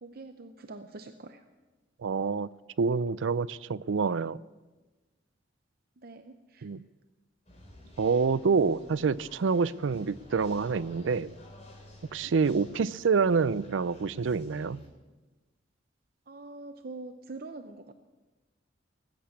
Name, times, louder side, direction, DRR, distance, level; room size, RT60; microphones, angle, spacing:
voice 1, 0.0-1.4 6.0-6.7 16.3-17.9, right 3 dB, 50° right, 0.7 m, -44 dB
voice 2, 2.0-2.5 2.8-4.4 6.6-6.8 8.0-11.3 12.1-14.8, right 5 dB, 85° right, 0.5 m, -27 dB
sound 1, 7.5-14.9, left 1 dB, 35° left, 3.6 m, -52 dB
20.0 x 8.6 x 8.3 m
head